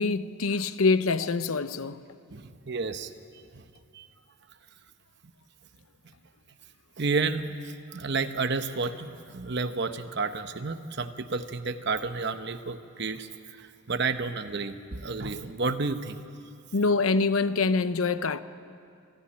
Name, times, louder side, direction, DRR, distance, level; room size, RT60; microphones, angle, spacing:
voice 1, 0.0-2.0 16.7-18.4, left 4 dB, 85° left, 0.7 m, -25 dB
voice 2, 2.3-3.1 3.5-3.6 3.9-4.1 7.0-13.3 13.6-16.2, right 4 dB, 55° right, 0.9 m, -31 dB
26.0 x 11.5 x 9.8 m
head